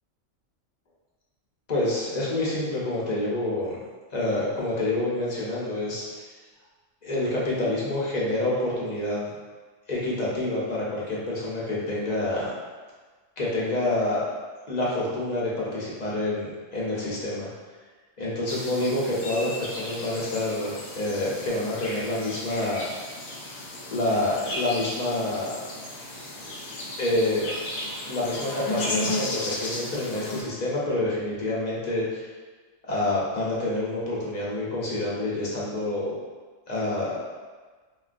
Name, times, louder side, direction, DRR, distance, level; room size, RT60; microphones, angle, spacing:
voice 1, 1.7-3.8 4.1-6.2 7.0-9.3 9.9-12.5 13.4-14.2 14.7-17.5 18.2-22.9 23.9-25.5 27.0-27.5 28.1-32.3 32.8-36.1 36.7-37.2, left 2 dB, 45° left, -6 dB, 0.6 m, -27 dB
sound 1, 18.5-30.4, left 1 dB, 65° left, 0.9 m, -34 dB
3.8 x 2.2 x 2.4 m, 1.4 s
omnidirectional pair, 1.4 m